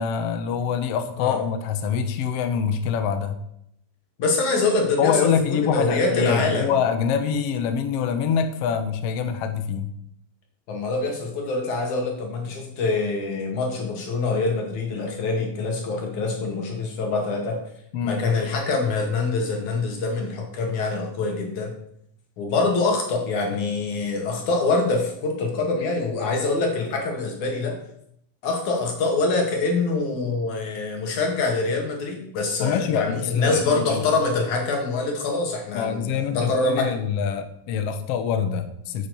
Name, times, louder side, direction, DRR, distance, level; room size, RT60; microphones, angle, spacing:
voice 1, 0.0-3.4 5.0-9.9 17.9-18.2 32.6-34.0 35.7-39.1, left 7 dB, 80° left, 8 dB, 1.4 m, -25 dB
voice 2, 4.2-6.7 10.7-17.6 18.0-21.7 22.4-27.7 28.4-36.9, left 3 dB, 55° left, 1 dB, 3.5 m, -25 dB
8.8 x 8.7 x 7.0 m, 0.73 s
omnidirectional pair, 4.2 m